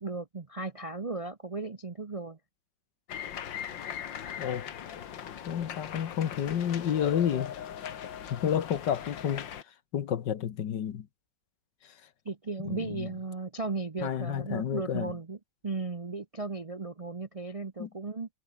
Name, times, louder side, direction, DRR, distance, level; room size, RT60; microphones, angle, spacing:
voice 1, 0.0-2.4 12.2-15.4 15.6-18.3, right 3 dB, 30° right, 0.6 m, -36 dB
sound 1, 3.1-9.6, left 9 dB, 90° left, 2.1 m, -40 dB
voice 2, 4.4-4.7 5.5-7.5 8.3-11.1 11.8-12.0 12.6-13.1 14.0-15.2 17.8-17.9, left 9 dB, 70° left, 1.9 m, -31 dB
omnidirectional pair, 1.9 m